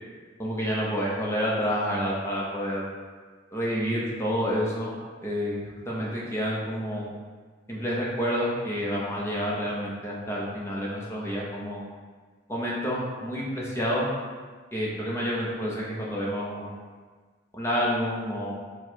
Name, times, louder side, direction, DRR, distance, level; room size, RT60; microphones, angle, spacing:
voice 1, 0.4-2.8 3.5-4.9 5.2-5.6 5.9-7.1 7.7-11.8 12.5-14.1 14.7-16.7 17.5-18.5, equal, 15° left, -5 dB, 0.7 m, -29 dB
4.6 x 2.3 x 4.5 m, 1.5 s
head